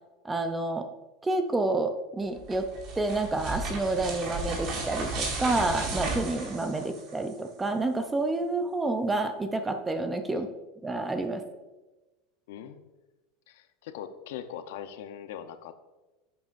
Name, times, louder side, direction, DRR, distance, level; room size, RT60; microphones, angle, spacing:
voice 1, 0.2-0.9 1.2-2.7 3.0-10.5 10.8-11.4, right 2 dB, 10° right, 7 dB, 0.6 m, -29 dB
sound 1, 2.4-7.3, right 3 dB, 40° right, 2.3 m, -34 dB
voice 2, 12.5-12.8 13.5-15.7, left 9 dB, 80° left, 10 dB, 0.7 m, -41 dB
11.0 x 7.8 x 2.6 m, 1.1 s
supercardioid pair, 145°, 0 cm